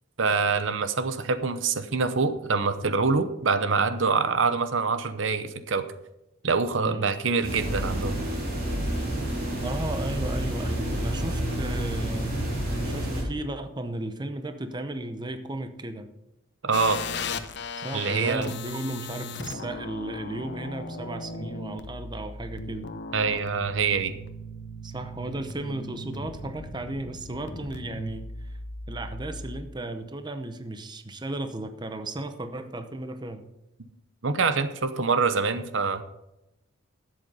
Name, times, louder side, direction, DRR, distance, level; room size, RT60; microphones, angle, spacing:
voice 1, 0.2-5.8 6.4-8.2 16.6-17.0 17.9-18.5 23.1-24.1 34.2-36.0, right 4 dB, 70° right, 11 dB, 0.8 m, -25 dB
voice 2, 6.8-7.1 9.6-12.3 12.8-16.1 17.8-22.9 24.8-28.6 28.9-33.4, right 1 dB, 20° right, 8 dB, 0.8 m, -35 dB
sound 1, 7.4-13.2, right 1 dB, 50° right, 4.5 m, -29 dB
sound 2, 16.7-29.6, left 2 dB, 60° left, 0.8 m, -37 dB
12.0 x 7.8 x 5.4 m, 0.89 s
head